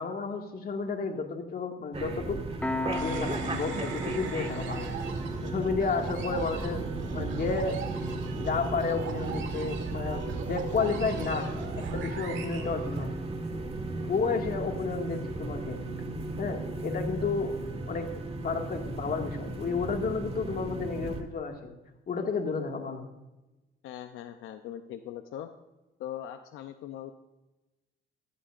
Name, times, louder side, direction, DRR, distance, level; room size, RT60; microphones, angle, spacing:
voice 1, 0.0-2.4 3.0-4.9 5.4-6.8 7.1-7.8 8.3-11.5 11.8-13.1 14.1-15.8 16.4-17.6 17.9-18.1 18.3-21.7 22.1-23.0, left 4 dB, 50° left, 3 dB, 2.1 m, -31 dB
sound 1, 1.9-21.2, right 2 dB, 30° right, 1.7 m, -36 dB
Piano, 2.6-13.7, left 2 dB, 10° left, 1.0 m, -42 dB
sound 2, 2.9-13.5, right 6 dB, 75° right, 1.8 m, -39 dB
voice 2, 23.8-25.5 26.0-27.1, left 11 dB, 90° left, 8 dB, 0.6 m, -40 dB
14.5 x 14.0 x 2.5 m, 1.0 s
cardioid pair, 90°, 20 cm